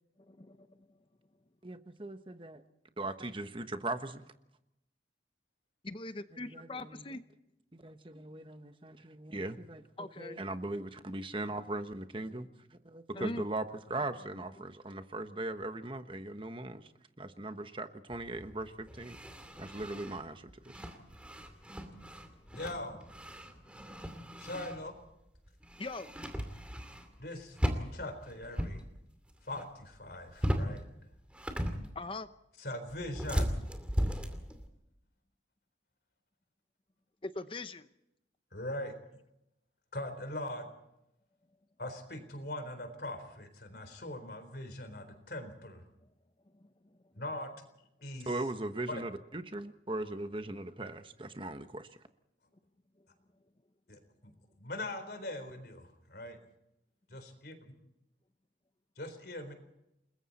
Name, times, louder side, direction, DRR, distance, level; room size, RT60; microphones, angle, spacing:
voice 1, 0.3-0.9 5.8-7.2 10.0-10.4 13.2-13.4 25.8-26.1 31.9-32.3 37.2-37.9 46.5-46.7, left 2 dB, 30° left, 11 dB, 0.8 m, -41 dB
voice 2, 1.6-2.6 3.0-4.2 6.4-7.1 7.7-16.9 17.2-19.2 19.6-20.8 48.3-51.9, right 2 dB, 30° right, 9 dB, 1.2 m, -39 dB
sound 1, 18.1-25.1 25.3-27.3 27.5-28.8 29.1-29.6 29.9-30.8 31.2-32.1 32.9-34.7, equal, 5° right, 2.5 m, -37 dB
voice 3, 22.5-23.1 24.4-24.9 27.2-27.6 27.9-28.9 29.4-30.8 32.6-33.6 38.5-38.9 39.9-40.7 41.8-45.8 47.2-47.5 48.0-48.3 48.9-49.0 53.9-54.3 54.6-56.4 57.1-57.5 59.0-59.5, left 1 dB, 55° left, 8 dB, 4.1 m, -41 dB
29.5 x 21.0 x 4.3 m, 0.85 s
head